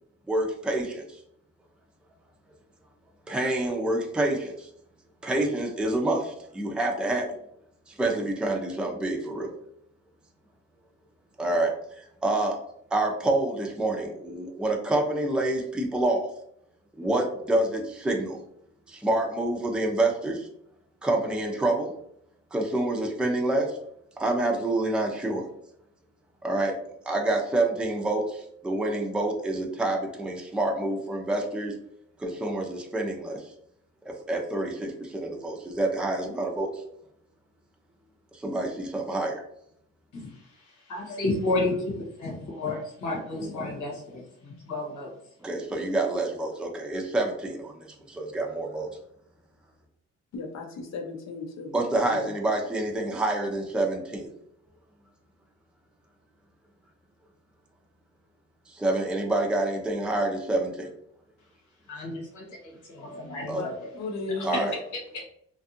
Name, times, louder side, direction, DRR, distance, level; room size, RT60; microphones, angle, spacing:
voice 1, 0.3-1.2 3.3-4.7 5.2-7.3 7.9-9.5 11.4-12.6 12.9-16.3 17.0-18.4 18.9-20.5 21.0-21.9 22.5-23.8 24.2-25.4 26.4-26.8 27.0-31.7 32.2-33.5 34.0-36.8 38.3-39.4 45.4-48.9 51.7-54.3 58.7-60.9 63.5-63.6 64.4-64.7, right 2 dB, 5° right, 0 dB, 0.5 m, -27 dB
voice 2, 40.1-45.1 61.9-64.0 64.4-64.6 64.9-65.3, left 2 dB, 85° left, -2 dB, 1.1 m, -32 dB
voice 3, 50.3-51.7 52.1-52.3 63.5-63.7 64.0-64.7, left 3 dB, 60° left, 4 dB, 0.7 m, -35 dB
2.6 x 2.4 x 2.6 m, 0.71 s
cardioid pair, 90°, 30 cm